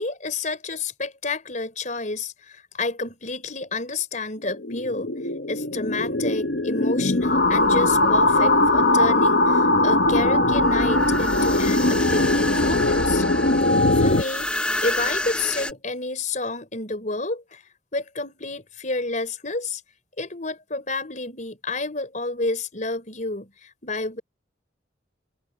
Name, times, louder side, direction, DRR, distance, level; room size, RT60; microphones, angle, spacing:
voice 1, 0.0-5.1 5.5-13.3 13.9-14.5 14.8-17.6 17.9-19.8 20.2-24.2, left 3 dB, 40° left, 4.4 m, -30 dB
sound 1, 4.5-14.2, left 2 dB, 60° left, 1.1 m, -20 dB
sound 2, 7.2-15.7, left 1 dB, 5° left, 0.7 m, -31 dB
head